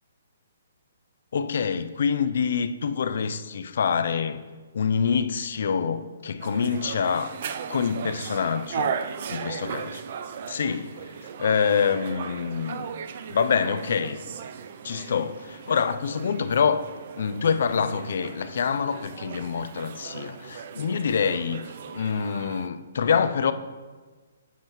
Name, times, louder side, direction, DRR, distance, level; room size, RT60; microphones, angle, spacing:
voice 1, 1.3-4.4 4.7-7.4 7.7-8.9 9.3-10.0 10.4-11.1 11.4-12.9 13.3-14.2 14.8-16.9 17.2-23.5, left 6 dB, 60° left, 0.4 m, -26 dB
sound 1, 6.4-22.7, right 7 dB, 45° right, 0.3 m, -37 dB
8.7 x 7.3 x 3.0 m
hypercardioid pair, 165°, 0 cm